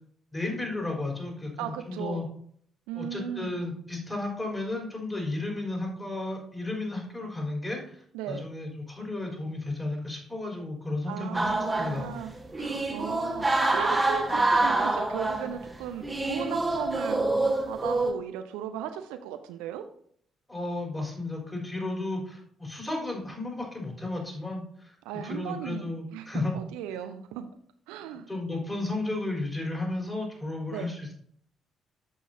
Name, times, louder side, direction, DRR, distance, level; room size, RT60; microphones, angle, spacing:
voice 1, 0.3-2.3 2.9-11.5 11.8-12.1 20.5-24.9 25.2-26.6 28.3-31.1, left 2 dB, 20° left, -1 dB, 3.9 m, -33 dB
voice 2, 1.6-2.3 2.9-3.5 8.1-8.5 11.1-17.2 17.6-19.9 25.0-26.3 26.5-27.5 27.9-28.3 30.7-30.9, right 10 dB, 70° right, 8 dB, 0.5 m, -37 dB
sound 1, 11.3-18.1, right 2 dB, 15° right, 1.3 m, -26 dB
13.0 x 5.5 x 2.8 m, 0.62 s
figure-of-eight pair, 40°, 0 cm